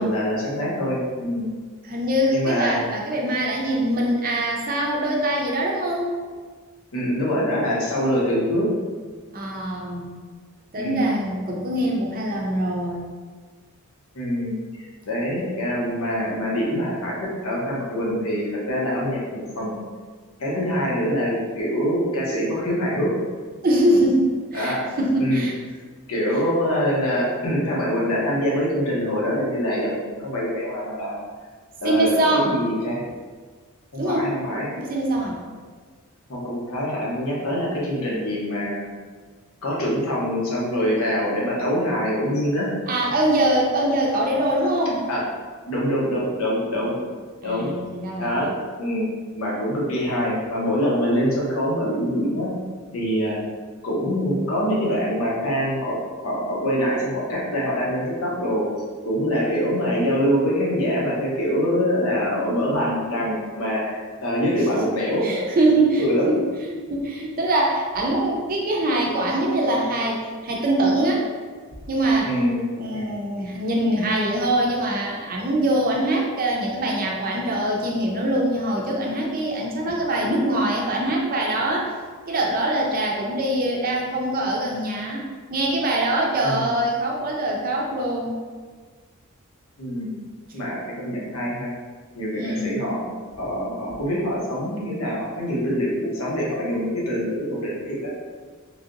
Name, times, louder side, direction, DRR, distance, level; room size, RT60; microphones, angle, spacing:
voice 1, 0.0-1.5 2.3-2.8 6.9-8.7 10.7-11.1 14.1-19.7 20.4-23.1 24.5-24.9 25.2-25.4 26.1-31.2 31.8-33.0 33.9-34.7 36.3-38.9 39.6-42.7 45.1-45.2 45.7-47.0 47.4-48.5 48.8-49.1 49.3-52.5 52.9-53.4 53.8-56.0 56.2-58.7 59.0-65.2 66.0-66.3 72.2-72.7 72.9-73.1 86.4-86.7 89.8-90.1 90.5-91.7 92.1-93.0 93.4-98.1, equal, 75° left, -4 dB, 0.9 m, -24 dB
voice 2, 1.8-6.2 9.3-10.1 10.7-13.1 23.6-25.5 31.8-32.6 34.0-34.3 34.8-35.4 42.9-45.0 47.4-48.6 64.7-64.8 65.2-71.3 71.9-72.3 72.8-81.9 82.3-88.4 92.3-93.0 93.4-93.5, right 1 dB, 40° right, -1 dB, 0.5 m, -23 dB
3.2 x 2.7 x 2.5 m, 1.5 s
head